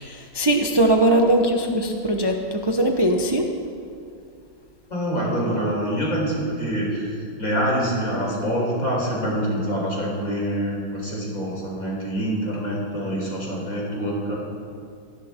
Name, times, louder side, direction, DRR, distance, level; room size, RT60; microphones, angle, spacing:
voice 1, 0.0-3.5, right 1 dB, 30° right, 3 dB, 0.4 m, -20 dB
voice 2, 4.9-14.4, equal, 40° left, -3 dB, 4.8 m, -25 dB
19.5 x 15.5 x 4.4 m, 2.3 s
omnidirectional pair, 2.2 m